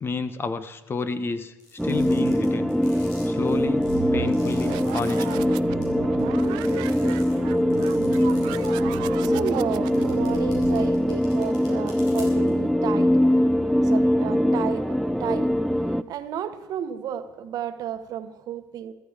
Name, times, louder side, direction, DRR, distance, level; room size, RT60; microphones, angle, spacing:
voice 1, 0.0-1.5 1.8-2.7 3.3-5.5, left 4 dB, 30° left, 12 dB, 1.0 m, -30 dB
sound 1, 1.6-5.3 5.8-5.9 6.2-8.7 9.0-9.1 9.8-12.5, left 4 dB, 85° left, 4.5 m, -48 dB
sound 2, 1.8-16.0, equal, ahead, 0.4 m, -22 dB
sound 3, 3.6-11.3, right 17 dB, 80° right, 0.4 m, -36 dB
voice 2, 9.2-13.4 13.8-15.6 15.8-18.9, right 10 dB, 60° right, 10 dB, 1.2 m, -33 dB
14.5 x 12.5 x 5.0 m, 1.0 s
cardioid pair, 100°, 7 cm